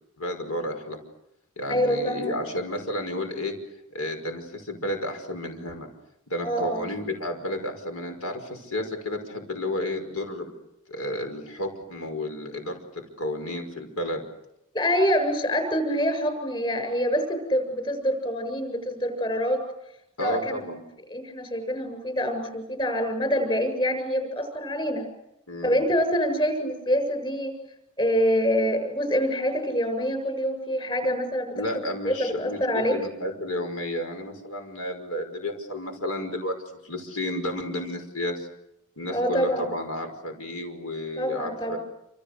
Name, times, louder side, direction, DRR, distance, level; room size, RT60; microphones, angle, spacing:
voice 1, 0.2-1.0 1.6-3.5 3.9-5.9 6.3-10.5 10.9-14.3 20.2-20.8 25.5-25.8 31.6-38.5 39.0-41.8, left 1 dB, 80° left, 5 dB, 5.7 m, -32 dB
voice 2, 1.7-2.5 6.4-6.9 14.7-19.6 20.2-20.7 21.1-25.0 25.6-27.5 28.0-33.0 39.1-39.7 41.2-41.8, equal, 25° left, 8 dB, 7.6 m, -26 dB
28.5 x 28.0 x 6.8 m, 0.82 s
head